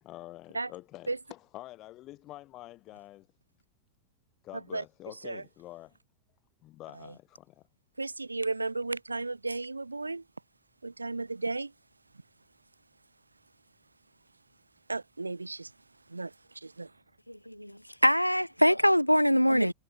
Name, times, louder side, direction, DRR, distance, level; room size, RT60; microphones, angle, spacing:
voice 1, 0.0-3.3 4.4-6.0 6.6-7.7, left 16 dB, 35° left, 1.3 m, -47 dB
voice 2, 8.0-10.2 10.8-11.7 14.9-15.7 16.1-16.9 19.5-19.7, right 3 dB, 80° right, 0.5 m, -34 dB
voice 3, 17.3-19.7, equal, 90° left, 0.6 m, -24 dB
figure-of-eight pair, 90°, 0 cm